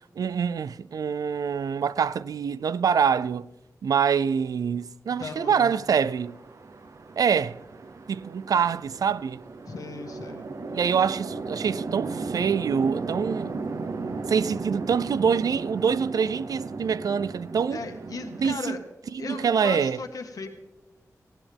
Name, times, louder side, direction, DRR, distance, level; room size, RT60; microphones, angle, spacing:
voice 1, 0.2-3.5 3.8-6.4 7.2-7.6 8.1-9.4 10.7-13.6 14.3-17.8 18.4-18.8 19.2-20.0, right 6 dB, 90° right, 0.4 m, -25 dB
Chatter / Traffic noise roadway noise / Train, 5.1-18.6, right 4 dB, 60° right, 0.8 m, -36 dB
voice 2, 5.2-5.7 9.7-10.5 17.7-18.8 19.2-20.5, left 4 dB, 80° left, 1.5 m, -37 dB
19.0 x 15.5 x 3.5 m
wide cardioid pair, 125°, 6 cm